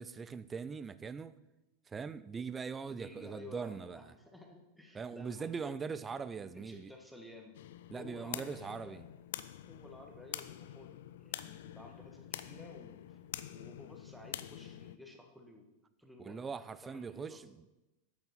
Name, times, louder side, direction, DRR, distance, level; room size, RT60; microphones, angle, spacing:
voice 1, 0.0-1.3 1.9-4.0 4.9-6.9 7.9-9.0 16.2-17.8, right 5 dB, 15° right, 15 dB, 0.5 m, -41 dB
voice 2, 2.9-7.6 7.9-9.0 9.7-13.2 13.5-15.7 16.0-16.4 16.8-17.5, left 2 dB, ahead, 1 dB, 1.7 m, -53 dB
sound 1, 7.5-15.0, left 12 dB, 55° left, 0.4 m, -46 dB
9.0 x 8.1 x 5.4 m, 0.99 s
figure-of-eight pair, 90°, 0 cm